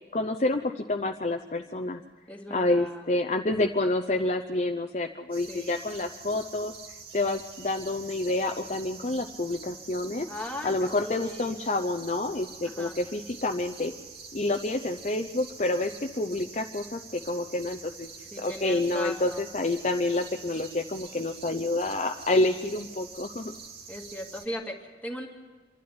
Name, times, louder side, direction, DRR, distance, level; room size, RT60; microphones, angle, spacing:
voice 1, 0.1-2.0 2.5-6.7 7.1-10.3 10.6-13.9 14.3-15.9 16.2-18.2 18.4-23.5, left 2 dB, 40° left, 5 dB, 0.7 m, -28 dB
voice 2, 2.3-3.0 5.5-5.8 10.3-11.7 12.6-13.0 18.3-19.5 23.9-25.3, left 1 dB, 10° left, 0 dB, 2.2 m, -38 dB
sound 1, 5.3-24.5, right 5 dB, 60° right, 2.5 m, -46 dB
26.5 x 12.0 x 9.8 m, 1.4 s
head